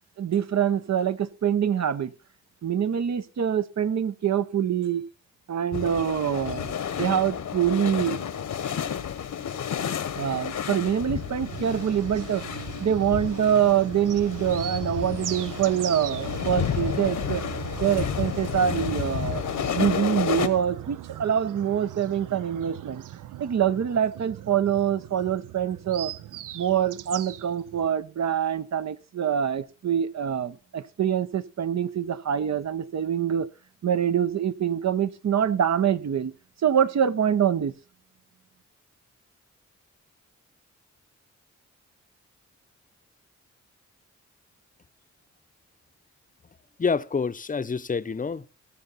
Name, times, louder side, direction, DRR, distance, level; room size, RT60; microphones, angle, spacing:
voice 1, 0.2-2.1 2.6-5.0 5.5-8.2 10.1-12.5 12.8-17.4 17.8-19.4 19.7-23.0 23.4-26.1 26.5-33.5 33.8-36.3 36.6-37.7, right 9 dB, 60° right, 0.8 m, -25 dB
sound 1, 5.7-20.5, left 8 dB, 75° left, 1.1 m, -31 dB
sound 2, 11.1-27.9, right 13 dB, 85° right, 0.5 m, -39 dB
voice 2, 46.8-48.5, left 5 dB, 25° left, 0.7 m, -27 dB
18.5 x 6.8 x 4.0 m
cardioid pair, 50°, 31 cm